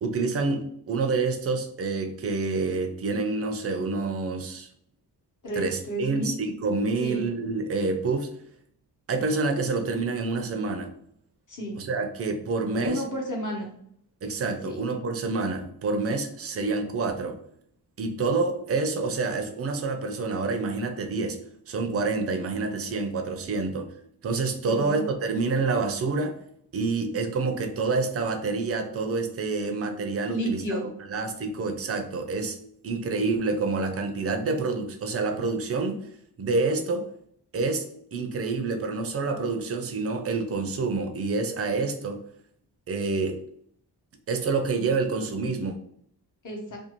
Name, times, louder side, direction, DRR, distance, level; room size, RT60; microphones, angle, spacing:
voice 1, 0.0-4.7 5.6-8.3 9.1-10.9 11.8-13.0 14.2-17.4 18.0-21.4 21.7-23.9 24.2-26.4 26.7-30.8 31.1-32.6 32.8-36.0 36.4-37.1 37.5-37.8 38.1-42.2 42.9-43.4 44.3-45.8, right 3 dB, 35° right, 6 dB, 0.4 m, -27 dB
voice 2, 5.4-6.4 7.0-7.2 11.5-11.8 12.7-13.7 14.7-14.8 24.6-25.0 30.3-30.9 46.4-46.8, equal, 50° left, -1 dB, 0.9 m, -31 dB
2.6 x 2.3 x 2.9 m, 0.65 s
wide cardioid pair, 145°, 41 cm